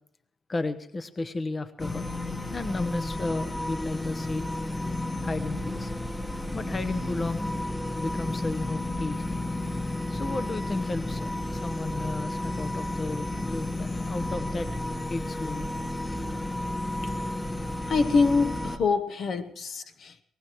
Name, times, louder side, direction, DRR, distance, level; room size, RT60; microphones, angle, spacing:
voice 1, 0.5-2.1 2.5-4.5 5.2-5.9 6.5-7.5 7.9-9.2 10.1-14.7 15.1-15.7, left 2 dB, 30° left, 1.0 m, -33 dB
sound 1, 1.8-18.8, left 1 dB, 15° left, 1.3 m, -32 dB
voice 2, 17.9-20.2, left 4 dB, 60° left, 1.0 m, -25 dB
22.5 x 19.0 x 3.1 m
cardioid pair, 90°, 0 cm